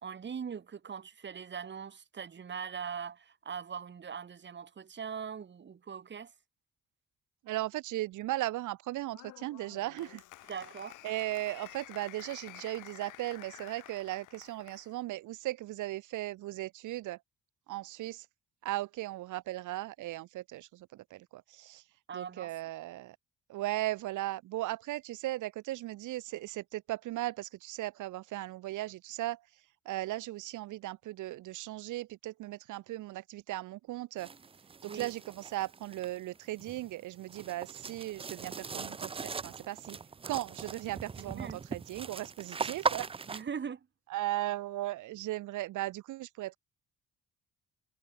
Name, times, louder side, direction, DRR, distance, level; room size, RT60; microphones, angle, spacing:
voice 1, 0.0-6.3 10.5-11.0 22.1-22.5 34.9-35.1 41.2-41.6 43.3-43.9, right 7 dB, 35° right, 1.5 m, -41 dB
voice 2, 7.4-10.2 11.0-17.2 17.7-18.3 18.6-21.8 22.1-23.2 23.5-29.5 29.8-34.3 34.8-40.0 40.2-43.1 44.1-46.6, right 16 dB, 80° right, 0.9 m, -37 dB
Applause, 9.1-14.9, left 17 dB, 90° left, 1.0 m, -51 dB
sound 1, 34.2-43.4, right 5 dB, 20° right, 0.4 m, -39 dB
cardioid pair, 90°, 30 cm